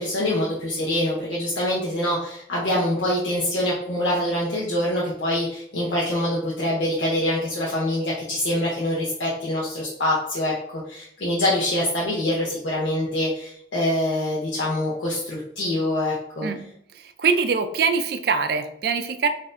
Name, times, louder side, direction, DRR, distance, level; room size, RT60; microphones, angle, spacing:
voice 1, 0.0-16.5, left 1 dB, 85° left, -6 dB, 0.8 m, -25 dB
voice 2, 16.9-19.3, right 5 dB, 55° right, 8 dB, 0.3 m, -23 dB
4.1 x 2.6 x 2.5 m, 0.71 s
head